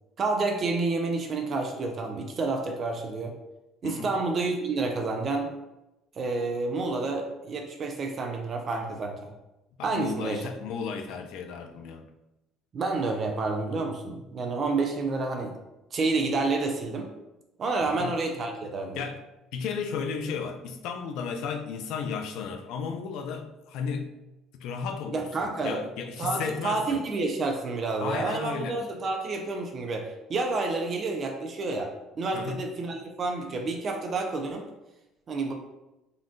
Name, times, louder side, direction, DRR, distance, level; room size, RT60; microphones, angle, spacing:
voice 1, 0.2-3.3 3.8-5.5 6.2-9.3 9.8-10.4 12.7-15.5 15.9-17.1 17.6-19.0 25.1-25.8 26.2-34.6 35.3-35.5, right 3 dB, 40° right, 3 dB, 0.4 m, -29 dB
voice 2, 9.8-12.0 17.9-18.1 18.9-19.2 19.5-24.1 24.5-27.0 28.0-28.8 32.3-32.6, left 6 dB, 75° left, 6 dB, 0.3 m, -34 dB
3.7 x 2.2 x 2.5 m, 0.96 s
cardioid pair, 130°, 0 cm